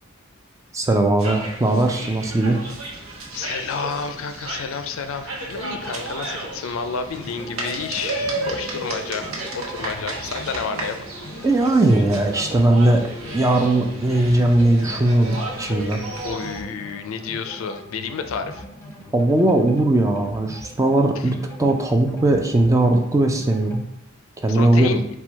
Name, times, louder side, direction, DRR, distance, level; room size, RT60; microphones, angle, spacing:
voice 1, 0.7-2.6 11.4-13.0 13.3-16.0 19.1-23.8 24.4-25.0, right 2 dB, 15° right, 3 dB, 0.4 m, -19 dB
sound 1, 1.2-16.6, right 2 dB, 80° right, 0.9 m, -33 dB
voice 2, 3.3-9.3 9.5-11.0 16.2-18.6 21.2-21.3 24.5-25.1, left 5 dB, 70° left, 8 dB, 0.4 m, -30 dB
sound 2, 7.1-23.8, left 1 dB, 15° left, 0.9 m, -40 dB
4.3 x 2.3 x 4.4 m, 0.84 s
head